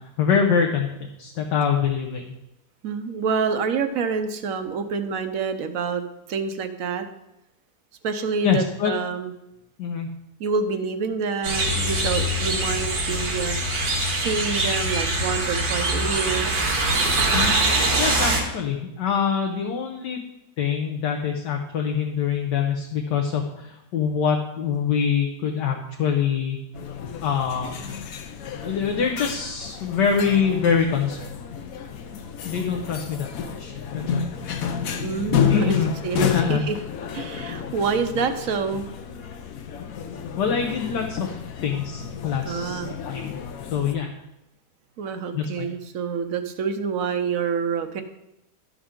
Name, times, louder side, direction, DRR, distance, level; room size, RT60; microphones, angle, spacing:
voice 1, 0.2-0.9 1.2-2.3 8.4-8.9 9.8-10.1 17.3-17.5 18.0-20.2 20.6-26.6 27.2-27.7 28.6-31.3 32.4-34.2 35.5-35.9 36.2-36.6 40.4-43.3 43.6-44.1 45.3-45.7, left 7 dB, 85° left, 2 dB, 1.5 m, -24 dB
voice 2, 2.8-6.0 6.3-7.1 8.0-9.3 10.4-13.6 14.1-16.6 34.9-36.8 37.1-38.9 42.4-42.9 45.0-48.0, right 5 dB, 60° right, 8 dB, 1.0 m, -27 dB
sound 1, 11.4-18.4, right 2 dB, 85° right, 2.3 m, -23 dB
sound 2, 26.7-43.9, left 7 dB, 65° left, 1.1 m, -30 dB
11.5 x 6.9 x 3.7 m, 0.88 s
omnidirectional pair, 1.8 m